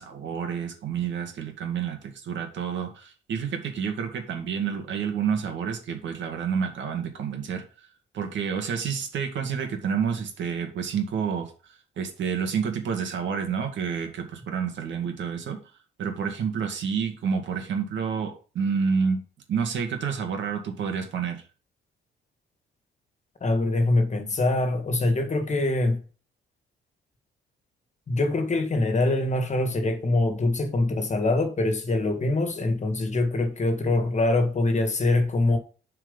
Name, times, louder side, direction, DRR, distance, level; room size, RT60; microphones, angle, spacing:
voice 1, 0.0-7.9 8.1-15.6 16.0-19.2 19.5-21.4, right 6 dB, 70° right, 2.2 m, -29 dB
voice 2, 23.4-26.0 28.1-35.6, left 2 dB, 35° left, 1.8 m, -24 dB
7.7 x 4.7 x 5.4 m
cardioid pair, 90°, 20 cm